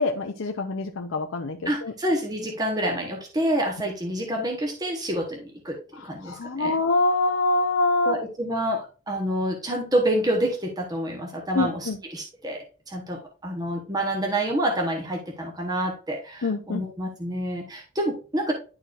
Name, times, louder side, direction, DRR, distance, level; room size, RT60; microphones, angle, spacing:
voice 1, 0.0-1.9 6.0-8.2 11.5-12.0 16.4-16.8, left 2 dB, 75° left, 4 dB, 0.6 m, -25 dB
voice 2, 1.6-6.8 8.0-18.5, right 1 dB, 20° right, 0 dB, 1.1 m, -28 dB
10.5 x 4.6 x 2.5 m, 0.35 s
head